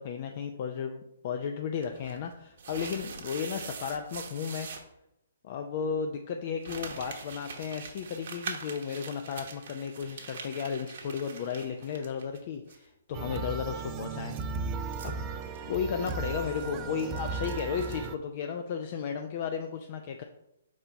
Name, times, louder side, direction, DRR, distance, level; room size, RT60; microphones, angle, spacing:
voice 1, 0.0-4.7 5.4-14.4 15.0-15.1 15.7-20.2, left 7 dB, 45° left, 5 dB, 0.4 m, -34 dB
sound 1, 1.8-4.8 6.6-12.4 12.7-12.8 14.0-18.1, right 5 dB, 60° right, 1.0 m, -43 dB
sound 2, 13.1-18.2, right 4 dB, 25° right, 0.4 m, -36 dB
4.4 x 4.2 x 5.2 m, 0.86 s
hypercardioid pair, 140°, 0 cm